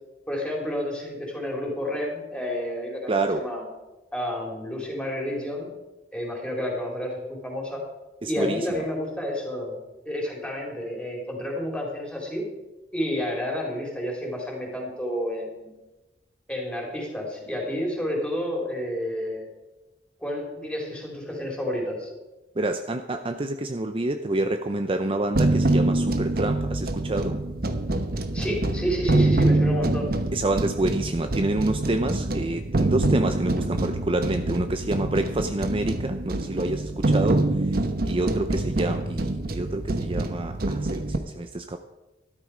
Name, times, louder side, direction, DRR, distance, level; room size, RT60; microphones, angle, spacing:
voice 1, 0.3-3.6 4.1-5.7 6.1-7.8 8.3-9.8 10.1-12.4 12.9-15.7 16.5-19.5 20.2-22.1 28.3-30.1, equal, 5° left, -1 dB, 3.8 m, -30 dB
voice 2, 3.1-3.5 8.2-8.8 22.6-27.4 30.3-41.8, right 2 dB, 30° right, 7 dB, 0.6 m, -28 dB
sound 1, 25.4-41.2, right 2 dB, 55° right, 1.1 m, -25 dB
13.0 x 12.5 x 5.0 m, 1.1 s
head